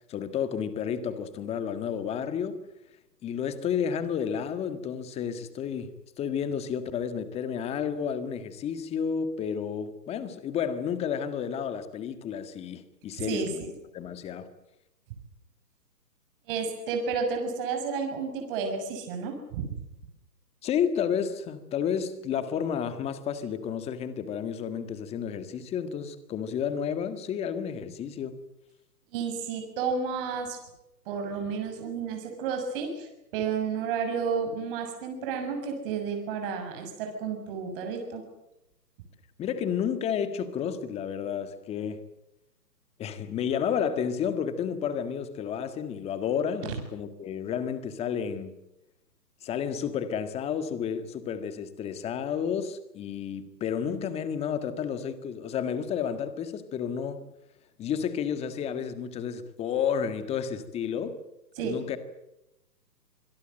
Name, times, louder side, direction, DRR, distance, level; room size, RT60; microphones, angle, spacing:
voice 1, 0.1-2.6 3.2-5.9 6.2-13.6 13.9-14.5 20.6-28.4 39.4-42.0 43.0-48.6 49.4-57.3 57.8-61.2 61.6-62.0, left 7 dB, 10° left, 1.7 m, -31 dB
voice 2, 13.2-13.7 16.5-19.6 29.1-30.6 31.1-38.2 61.6-61.9, right 5 dB, 30° right, 6.6 m, -31 dB
26.0 x 22.0 x 7.8 m
hypercardioid pair, 150°, 50 cm